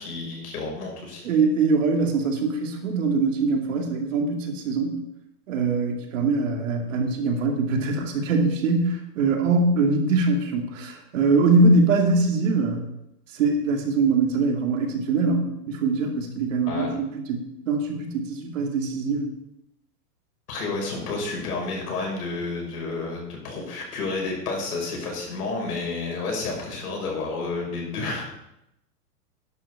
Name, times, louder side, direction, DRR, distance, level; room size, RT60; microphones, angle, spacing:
voice 1, 0.0-1.2 16.7-16.9 20.5-28.2, left 3 dB, 70° left, -1 dB, 5.9 m, -30 dB
voice 2, 1.2-5.0 5.5-12.8 13.3-19.3, right 3 dB, 50° right, 2 dB, 2.5 m, -23 dB
11.0 x 8.1 x 6.8 m, 0.84 s
supercardioid pair, 180°, 48 cm